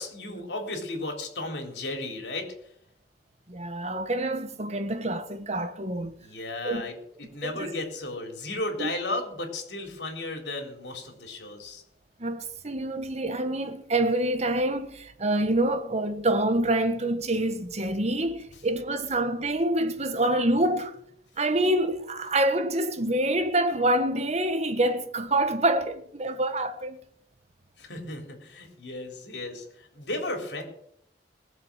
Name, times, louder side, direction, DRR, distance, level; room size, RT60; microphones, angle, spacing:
voice 1, 0.0-2.5 6.2-11.8 27.8-30.6, left 2 dB, 75° left, 3.9 m, -34 dB
voice 2, 3.5-6.1 6.6-6.9 7.4-7.7 8.8-8.9 12.2-21.0 21.4-27.0, right 1 dB, 40° right, 1.4 m, -26 dB
20.5 x 7.4 x 6.4 m
head